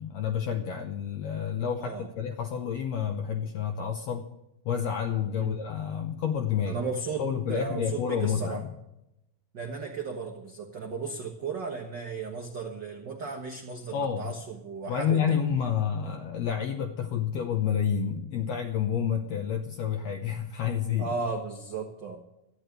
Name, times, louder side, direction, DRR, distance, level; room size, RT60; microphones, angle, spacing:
voice 1, 0.0-4.2 4.6-6.8 7.2-8.7 13.9-14.3 14.9-21.1, left 8 dB, 70° left, 3 dB, 1.6 m, -29 dB
voice 2, 6.7-7.2 7.5-8.6 9.5-15.6 21.0-22.2, right 4 dB, 85° right, 3 dB, 0.9 m, -35 dB
14.0 x 8.4 x 9.2 m, 0.87 s
omnidirectional pair, 4.1 m